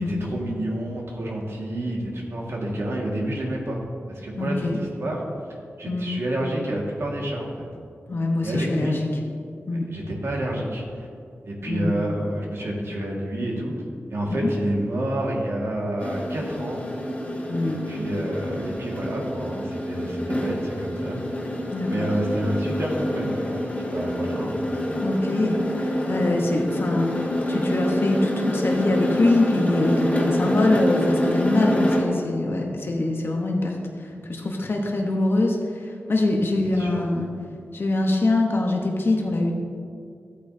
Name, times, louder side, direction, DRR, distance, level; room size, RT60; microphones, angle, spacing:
voice 1, 0.0-5.2 5.8-7.7 8.4-9.0 9.7-11.1 11.4-13.7 14.1-16.9 17.6-21.3 21.8-24.6 36.7-37.0, right 1 dB, 75° right, -2 dB, 1.8 m, -29 dB
voice 2, 4.4-4.8 5.9-6.1 8.1-9.0 9.7-9.8 11.7-11.9 14.3-14.5 17.5-17.8 21.7-22.1 25.0-33.8 34.3-35.6 36.1-37.3 37.7-39.5, left 2 dB, 55° left, 0 dB, 1.0 m, -23 dB
sound 1, 16.0-32.2, left 1 dB, 30° left, 2.1 m, -27 dB
13.0 x 8.4 x 2.7 m, 2.4 s
cardioid pair, 60°, 4 cm